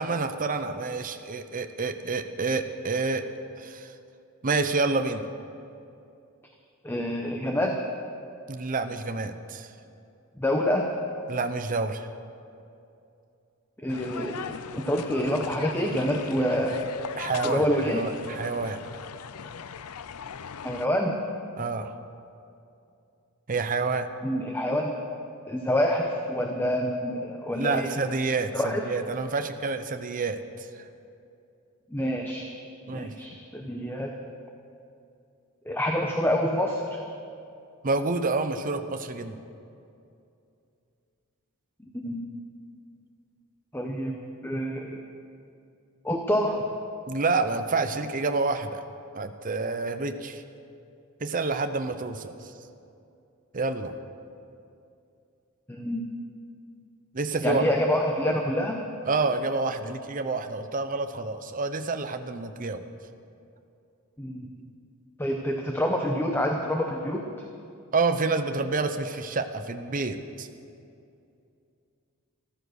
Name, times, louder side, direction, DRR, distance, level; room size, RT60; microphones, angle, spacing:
voice 1, 0.0-3.3 3.6-3.9 4.4-5.2 8.5-9.7 11.3-12.1 17.2-18.8 21.6-21.9 23.5-24.1 27.5-30.8 32.9-33.1 37.8-39.4 47.1-48.8 49.1-50.4 51.2-52.5 53.5-53.9 57.1-57.6 59.1-62.8 67.9-70.5, right 3 dB, 40° right, 8 dB, 0.7 m, -28 dB
voice 2, 6.8-7.8 10.4-10.9 13.8-16.9 17.4-18.1 20.6-21.2 24.2-25.0 25.5-27.9 28.5-28.9 31.9-32.5 32.9-34.1 35.7-37.0 41.9-42.2 43.7-44.2 44.4-45.0 46.0-46.6 55.7-56.0 57.4-58.8 64.2-64.5 65.2-67.3, equal, 10° left, 2 dB, 0.9 m, -27 dB
sound 1, 13.9-20.9, left 7 dB, 85° left, 0.5 m, -39 dB
14.0 x 13.5 x 6.5 m, 2.6 s
head